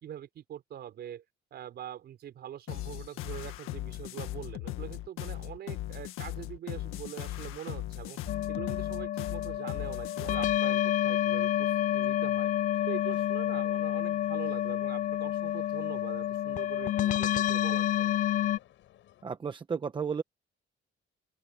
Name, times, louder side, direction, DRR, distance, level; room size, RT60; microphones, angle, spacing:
voice 1, 0.0-1.2 1.5-8.2 8.5-12.5 12.9-18.2, right 10 dB, 50° right, 5.0 m, -43 dB
sound 1, 2.7-10.6, left 15 dB, 90° left, 1.6 m, -38 dB
sound 2, 8.3-18.6, left 12 dB, 40° left, 0.4 m, -29 dB
sound 3, 9.5-19.2, left 13 dB, 65° left, 7.7 m, -58 dB
voice 2, 19.2-20.2, right 6 dB, 25° right, 1.0 m, -33 dB
open air
cardioid pair, 165°, 21 cm